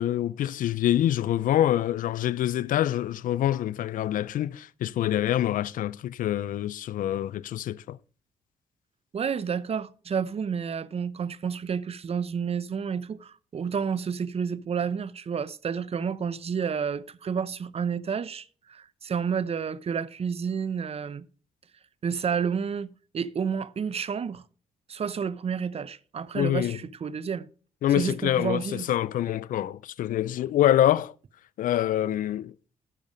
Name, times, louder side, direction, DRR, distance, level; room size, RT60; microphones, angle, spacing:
voice 1, 0.0-8.0 26.3-26.8 27.8-31.1 31.6-32.5, left 12 dB, 70° left, 0.5 m, -25 dB
voice 2, 9.1-21.3 22.0-24.4 24.9-27.5 27.9-28.9, right 6 dB, 45° right, 0.7 m, -30 dB
11.0 x 6.7 x 5.0 m
cardioid pair, 70°, 14 cm